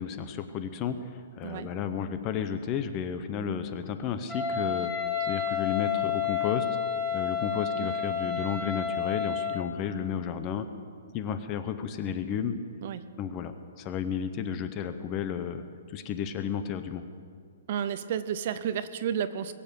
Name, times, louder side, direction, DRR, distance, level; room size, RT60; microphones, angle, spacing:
voice 1, 0.0-6.7 7.1-10.7 11.1-12.6 13.2-17.0, left 8 dB, 20° left, 10 dB, 0.6 m, -33 dB
Wind instrument woodwind instrument, 4.3-9.6, left 7 dB, ahead, 1.4 m, -30 dB
voice 2, 17.7-19.5, right 9 dB, 35° right, 13 dB, 0.5 m, -31 dB
21.5 x 7.7 x 6.8 m, 2.2 s
hypercardioid pair, 175°, 0 cm